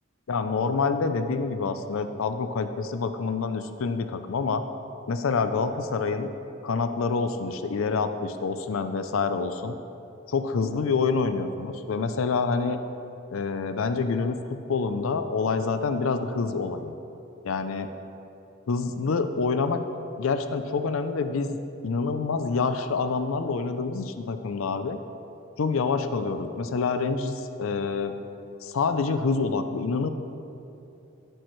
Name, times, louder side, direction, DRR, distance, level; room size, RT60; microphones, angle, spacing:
voice 1, 0.3-4.6 5.1-6.3 6.6-9.8 10.3-12.8 13.3-14.4 14.7-16.9 17.4-17.9 18.7-19.8 20.2-21.6 21.8-25.0 25.6-28.1 28.6-30.1, left 4 dB, 80° left, 9 dB, 0.5 m, -27 dB
12.5 x 8.9 x 3.2 m, 2.8 s
head